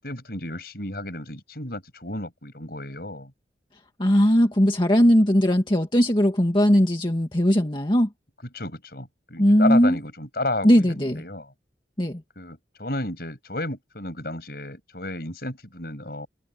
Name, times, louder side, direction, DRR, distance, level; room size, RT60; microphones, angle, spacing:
voice 1, 0.0-3.3 8.5-11.5 12.4-16.3, left 2 dB, 55° left, 7.9 m, -32 dB
voice 2, 4.0-8.1 9.4-10.0 10.6-11.2 12.0-12.2, equal, 25° left, 2.0 m, -19 dB
head